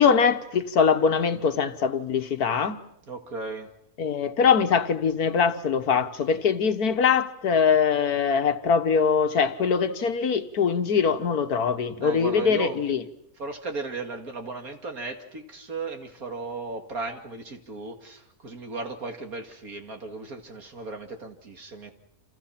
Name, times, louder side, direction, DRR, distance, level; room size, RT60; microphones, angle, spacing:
voice 1, 0.0-2.8 4.0-13.1, left 6 dB, 75° left, 1.8 m, -22 dB
voice 2, 3.1-3.7 12.0-12.8 13.4-21.9, right 3 dB, 70° right, 2.8 m, -35 dB
29.5 x 27.5 x 5.9 m
omnidirectional pair, 1.6 m